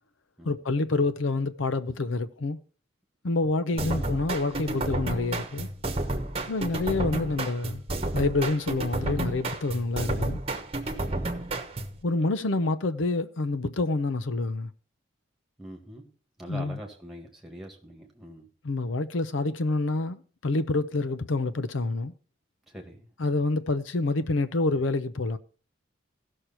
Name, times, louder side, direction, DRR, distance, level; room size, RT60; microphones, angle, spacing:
voice 1, 0.4-2.6 3.2-5.7 6.5-7.8 8.1-10.4 12.0-14.7 16.5-16.8 18.6-22.1 23.2-25.4, left 2 dB, 85° left, 0.7 m, -27 dB
voice 2, 3.7-4.1 6.1-6.5 11.1-11.5 15.6-16.1 16.4-18.5 22.7-23.1, right 1 dB, ahead, 2.1 m, -44 dB
sound 1, 3.8-12.0, right 2 dB, 30° right, 1.1 m, -31 dB
15.5 x 6.5 x 4.3 m
head